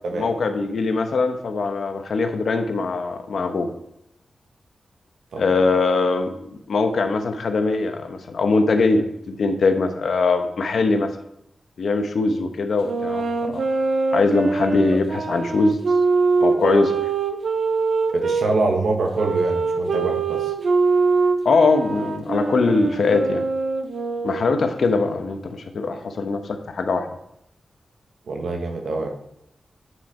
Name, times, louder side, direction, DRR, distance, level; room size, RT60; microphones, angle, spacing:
voice 1, 0.1-3.7 5.4-11.1 11.8-13.7 14.1-15.8 16.4-17.0 21.4-23.4 24.2-27.1, left 3 dB, 70° left, 7 dB, 1.0 m, -21 dB
sound 1, 12.8-18.4 19.1-24.7, right 4 dB, 70° right, 0.9 m, -23 dB
voice 2, 18.1-20.5 28.3-29.1, right 3 dB, 85° right, 3 dB, 1.5 m, -24 dB
9.6 x 5.8 x 4.4 m, 0.78 s
wide cardioid pair, 130°, 0 cm